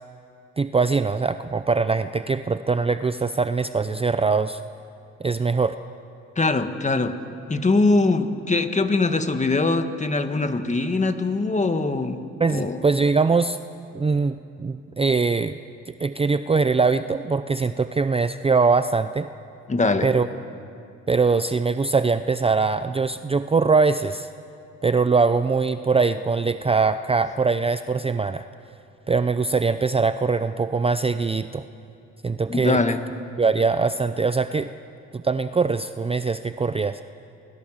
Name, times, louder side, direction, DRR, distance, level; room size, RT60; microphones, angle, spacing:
voice 1, 0.6-4.6 5.2-5.7 12.4-13.6 13.9-15.6 16.0-19.3 20.0-20.3 21.1-24.3 24.8-28.5 29.1-31.6 32.2-32.8 33.4-34.7 35.1-37.0, right 4 dB, 20° right, 11 dB, 0.6 m, -22 dB
voice 2, 6.4-7.2 7.5-12.2 12.5-12.8 19.7-20.1 32.5-33.0, left 3 dB, 25° left, 8 dB, 1.7 m, -22 dB
28.5 x 20.5 x 7.5 m, 2.6 s
cardioid pair, 90°, 30 cm